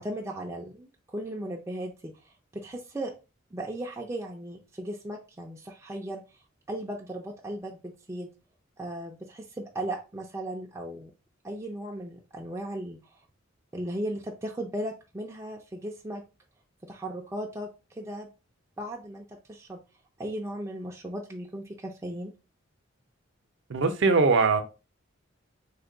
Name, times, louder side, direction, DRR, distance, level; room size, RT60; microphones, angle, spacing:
voice 1, 0.0-3.1 3.5-6.2 6.7-8.3 8.8-11.1 11.4-13.2 13.7-16.2 16.8-17.7 18.0-18.3 18.8-19.8 20.2-22.3, right 1 dB, 15° right, 0.4 m, -36 dB
voice 2, 23.7-24.6, right 4 dB, 60° right, 0.6 m, -21 dB
3.3 x 2.2 x 3.7 m
head